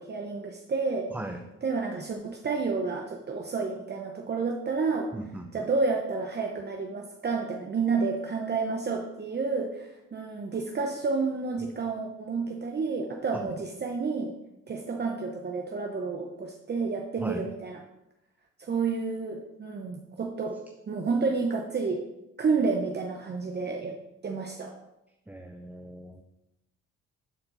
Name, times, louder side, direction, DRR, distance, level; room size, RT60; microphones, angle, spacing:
voice 1, 0.0-1.1 1.6-5.1 5.5-14.3 14.7-17.8 18.6-20.6 20.9-22.1 22.4-24.0 24.2-24.8, right 4 dB, 35° right, 2 dB, 0.8 m, -30 dB
voice 2, 5.1-5.4 13.3-13.4 17.2-17.4 25.3-26.2, right 1 dB, 5° right, 4 dB, 0.6 m, -37 dB
11.0 x 4.4 x 4.0 m, 0.92 s
cardioid pair, 90°, 30 cm